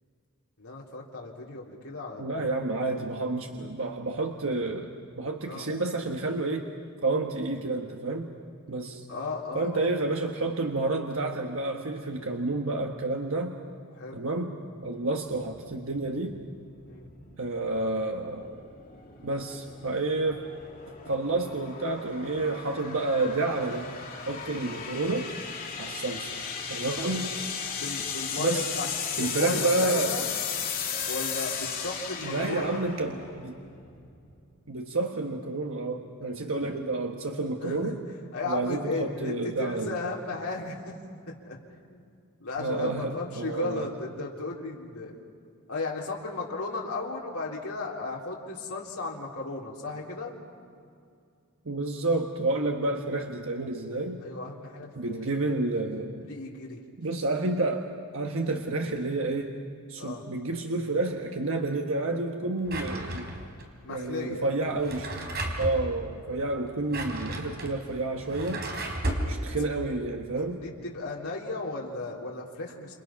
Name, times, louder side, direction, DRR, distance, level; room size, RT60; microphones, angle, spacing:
voice 1, 0.6-2.5 5.4-5.7 9.1-9.9 14.0-14.2 14.9-15.1 16.9-17.1 27.8-30.3 31.1-32.8 37.6-37.9 38.3-40.9 41.5-42.1 42.4-45.2 45.7-50.3 54.2-55.2 56.2-56.8 57.1-57.2 60.0-60.2 63.8-64.5 70.5-72.9, left 3 dB, 85° left, -3 dB, 3.7 m, -35 dB
voice 2, 2.2-4.9 5.2-6.6 7.0-8.3 8.7-9.0 9.5-13.5 14.1-14.5 14.8-16.4 17.4-18.7 19.2-20.4 21.0-23.9 24.3-25.3 25.8-26.3 26.7-27.3 28.4-28.6 29.2-30.1 32.2-33.6 34.7-38.0 38.4-40.0 42.6-43.9 51.6-54.2 54.9-56.3 57.0-59.6 59.9-63.3 63.9-65.3 65.6-68.7 69.3-70.6, right 2 dB, 65° right, 2 dB, 1.4 m, -30 dB
sound 1, 15.3-34.4, left 7 dB, 40° left, 3.4 m, -36 dB
Drawer open or close, 62.6-63.6 64.7-65.8 66.7-69.3, right 1 dB, 50° right, 3.9 m, -34 dB
29.0 x 29.0 x 5.9 m, 2.4 s
head